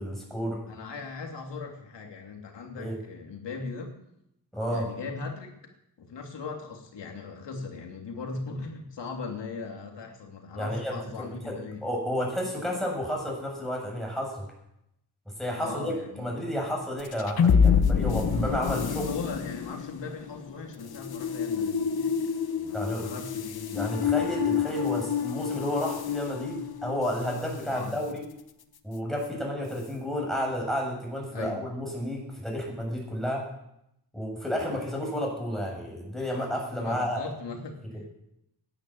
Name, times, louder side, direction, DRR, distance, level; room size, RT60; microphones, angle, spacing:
voice 1, 0.0-0.6 2.7-3.0 4.5-4.9 10.5-11.5 11.8-14.5 15.3-19.2 22.7-23.1 23.7-28.2 28.8-33.4 34.1-37.3, equal, ahead, -1 dB, 7.1 m, -31 dB
voice 2, 0.7-4.0 4.7-5.5 6.0-11.8 15.6-16.3 18.8-24.0 27.7-28.0 31.3-31.6 36.7-38.2, left 4 dB, 85° left, 2 dB, 3.1 m, -39 dB
sound 1, 17.0-27.5, left 7 dB, 60° left, 1.2 m, -27 dB
16.5 x 11.0 x 8.0 m, 0.81 s
wide cardioid pair, 100°, 41 cm